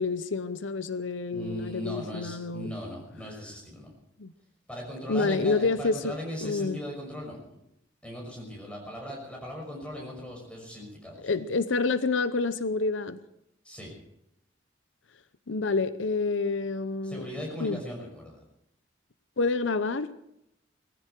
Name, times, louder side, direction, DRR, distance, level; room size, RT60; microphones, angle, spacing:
voice 1, 0.0-2.7 4.2-4.3 5.1-6.2 6.4-6.8 11.2-13.2 15.5-17.3 17.6-17.8 19.4-20.1, left 3 dB, 90° left, 0.8 m, -28 dB
voice 2, 1.3-3.9 4.7-7.4 8.0-11.3 13.6-14.0 17.0-18.4, equal, 5° left, 5.9 m, -38 dB
19.5 x 15.0 x 4.6 m
head